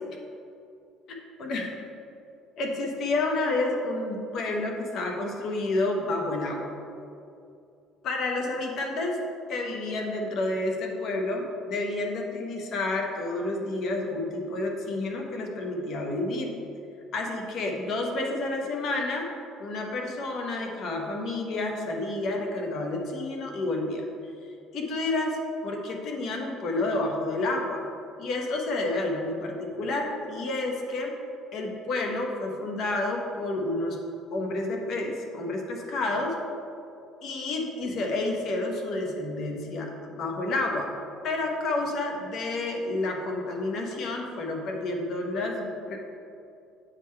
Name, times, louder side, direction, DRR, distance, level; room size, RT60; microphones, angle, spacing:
voice 1, 1.1-1.8 2.6-6.7 8.0-9.2 9.5-16.6 17.1-19.3 19.6-24.3 24.7-27.8 28.2-31.2 31.5-34.0 34.3-36.4 37.2-40.9 41.2-46.0, left 2 dB, 55° left, 1 dB, 1.0 m, -30 dB
8.8 x 3.8 x 4.4 m, 2.6 s
cardioid pair, 110°, 0 cm